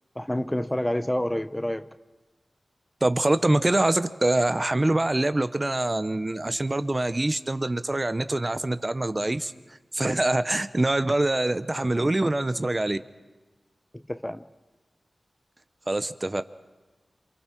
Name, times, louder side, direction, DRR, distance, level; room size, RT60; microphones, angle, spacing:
voice 1, 0.2-1.9 13.9-14.4, left 1 dB, 15° left, 11 dB, 0.7 m, -28 dB
voice 2, 3.0-9.5 9.9-13.0 15.9-16.4, right 2 dB, 30° right, 11 dB, 0.9 m, -24 dB
28.0 x 27.5 x 4.6 m, 1.2 s
wide cardioid pair, 70°, 0 cm